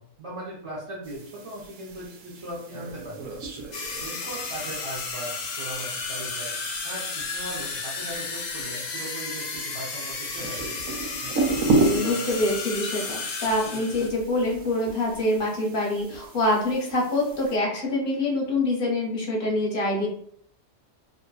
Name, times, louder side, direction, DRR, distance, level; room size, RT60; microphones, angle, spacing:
voice 1, 0.0-3.4 4.0-6.5 6.8-10.7, right 1 dB, 45° right, -6 dB, 0.4 m, -38 dB
sound 1, 1.0-17.6, right 2 dB, 75° right, 0.9 m, -33 dB
sound 2, 3.7-14.1, left 4 dB, 85° left, 0.3 m, -33 dB
voice 2, 11.7-20.1, left 1 dB, 50° left, -1 dB, 0.8 m, -25 dB
2.5 x 2.4 x 2.3 m, 0.62 s
omnidirectional pair, 1.3 m